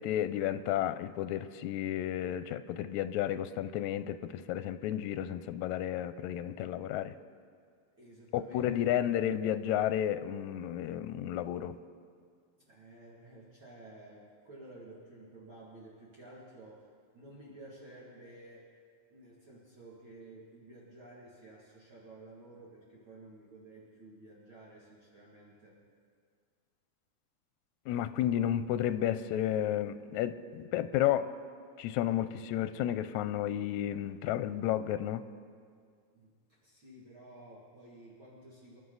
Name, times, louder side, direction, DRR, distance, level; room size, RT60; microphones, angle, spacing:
voice 1, 0.0-7.1 8.3-11.8 27.9-31.3 31.8-35.2, left 11 dB, 85° left, 11 dB, 1.9 m, -32 dB
voice 2, 8.0-9.0 12.6-16.8 17.1-18.7 19.1-25.8 36.1-38.8, right 2 dB, 45° right, -6 dB, 2.9 m, -53 dB
28.0 x 11.5 x 4.0 m, 2.1 s
omnidirectional pair, 3.4 m